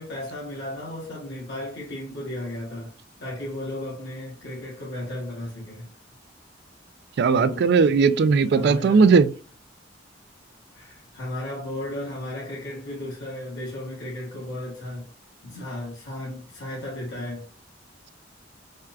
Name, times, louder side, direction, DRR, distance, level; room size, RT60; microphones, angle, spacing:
voice 1, 0.0-2.9 3.2-5.9 7.3-7.7 8.5-9.1 10.7-15.1 15.4-17.5, left 1 dB, 65° left, 1.3 m, -34 dB
voice 2, 7.2-9.3, right 5 dB, 60° right, 0.3 m, -18 dB
4.5 x 2.3 x 2.4 m
head